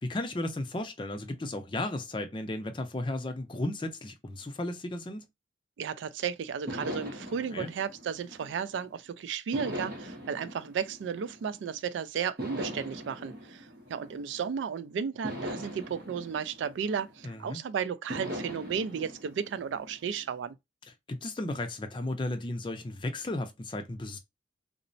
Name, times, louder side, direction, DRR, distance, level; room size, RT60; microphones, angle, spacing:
voice 1, 0.0-5.3 7.5-7.7 17.2-17.6 21.1-24.2, left 1 dB, 25° left, 0.4 m, -34 dB
voice 2, 5.8-20.6, right 7 dB, 85° right, 0.3 m, -34 dB
sound 1, 6.7-8.9 9.5-11.8 12.4-14.6 15.2-17.5 18.1-20.4, equal, 55° right, 1.0 m, -41 dB
3.0 x 2.0 x 2.5 m
head